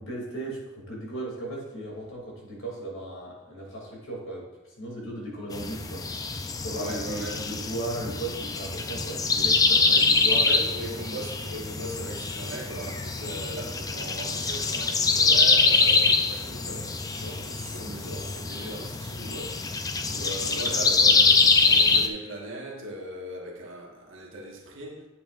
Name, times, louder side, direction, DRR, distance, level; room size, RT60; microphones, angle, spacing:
voice 1, 0.0-4.5 4.8-10.5, right 1 dB, 75° left, 2.6 m, -36 dB
sound 1, 5.5-22.1, left 4 dB, 15° left, 0.4 m, -24 dB
voice 2, 6.8-7.5 10.3-25.1, right 1 dB, 70° right, 1.5 m, -38 dB
10.0 x 8.1 x 2.5 m
head